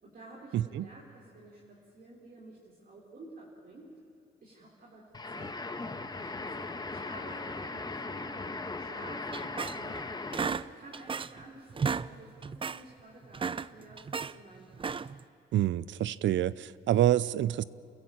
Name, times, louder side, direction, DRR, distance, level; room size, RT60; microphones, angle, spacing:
voice 1, 0.0-4.0 4.4-10.2 10.5-14.9, right 2 dB, 45° right, -4 dB, 4.1 m, -51 dB
voice 2, 0.5-0.9 15.5-17.6, right 12 dB, 70° right, 20 dB, 0.6 m, -27 dB
sound 1, 5.1-10.7, left 3 dB, 20° left, 1.5 m, -38 dB
sound 2, 9.3-10.0 10.3-11.4 11.7-12.1 12.4-12.8 13.2-14.3 14.7-15.2, right 5 dB, 25° right, 0.5 m, -34 dB
28.0 x 15.0 x 8.9 m, 2.9 s
cardioid pair, 90°, 20 cm